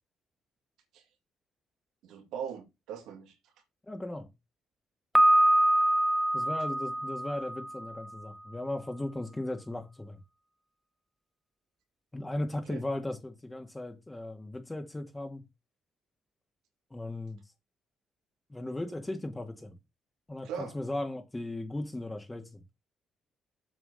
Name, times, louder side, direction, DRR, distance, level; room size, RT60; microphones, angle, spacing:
voice 1, 2.0-3.3 12.7-12.8 20.4-20.7, right 8 dB, 90° right, 2.5 m, -40 dB
voice 2, 3.9-4.3 6.3-10.2 12.1-15.4 16.9-17.4 18.5-19.8 20.3-22.6, left 1 dB, 15° left, 2.0 m, -37 dB
Piano, 5.2-8.0, right 1 dB, ahead, 0.6 m, -25 dB
7.9 x 4.9 x 6.5 m
cardioid pair, 90°, 0 cm